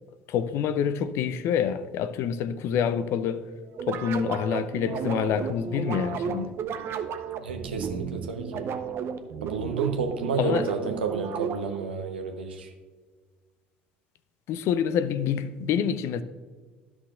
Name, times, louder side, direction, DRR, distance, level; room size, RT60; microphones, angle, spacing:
voice 1, 0.3-3.4 3.9-6.6 10.4-10.7 14.5-16.2, left 8 dB, 55° left, 0.5 m, -27 dB
sound 1, 3.8-11.9, right 7 dB, 45° right, 0.7 m, -33 dB
voice 2, 7.4-8.6 9.4-12.7, right 5 dB, 80° right, 0.9 m, -30 dB
12.5 x 6.1 x 2.5 m
figure-of-eight pair, 60°, 6 cm